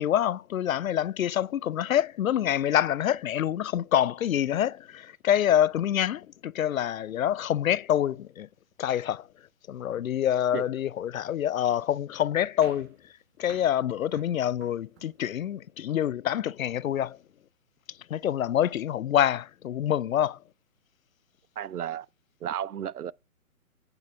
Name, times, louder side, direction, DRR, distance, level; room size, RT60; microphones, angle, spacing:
voice 1, 0.0-8.5 8.8-9.2 9.7-12.9 13.4-17.2 18.1-20.4, left 10 dB, 65° left, 0.5 m, -26 dB
sound 1, 12.6-15.5, right 7 dB, 15° right, 0.7 m, -53 dB
voice 2, 21.6-22.1 22.4-23.1, right 10 dB, 85° right, 0.6 m, -33 dB
9.0 x 7.8 x 3.3 m
figure-of-eight pair, 140°, 44 cm